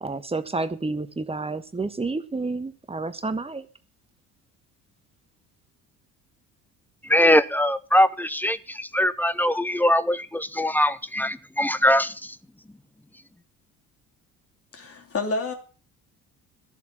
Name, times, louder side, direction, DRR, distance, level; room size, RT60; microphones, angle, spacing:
voice 1, 0.0-3.7, right 3 dB, 15° right, 11 dB, 1.3 m, -30 dB
voice 2, 7.0-12.3, left 1 dB, 5° left, 15 dB, 0.8 m, -22 dB
voice 3, 14.7-15.5, left 3 dB, 30° left, 4 dB, 2.9 m, -29 dB
14.5 x 7.1 x 7.1 m, 0.37 s
figure-of-eight pair, 55°, 44 cm